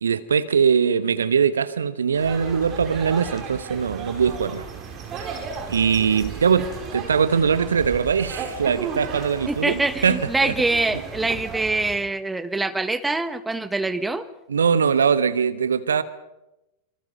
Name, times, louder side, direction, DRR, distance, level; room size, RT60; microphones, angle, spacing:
voice 1, 0.0-4.7 5.2-5.3 5.7-10.5 14.5-16.0, right 6 dB, 70° right, 1.2 m, -21 dB
sound 1, 2.1-12.0, right 5 dB, 30° right, 5.5 m, -35 dB
voice 2, 9.5-14.2, right 2 dB, 10° right, 1.4 m, -24 dB
26.5 x 25.0 x 5.5 m
figure-of-eight pair, 90°, 0 cm